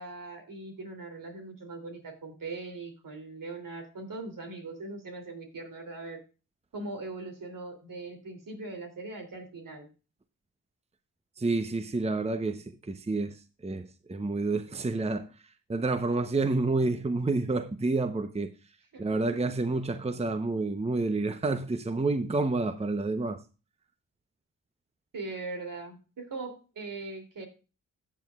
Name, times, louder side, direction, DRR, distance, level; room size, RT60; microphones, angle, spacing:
voice 1, 0.0-6.2 6.7-9.9 18.9-19.5 25.1-27.5, right 3 dB, 65° right, 3.0 m, -40 dB
voice 2, 11.4-15.3 15.7-18.5 19.0-23.4, right 3 dB, 15° right, 0.8 m, -29 dB
14.0 x 8.0 x 2.4 m
supercardioid pair, 45°, 36 cm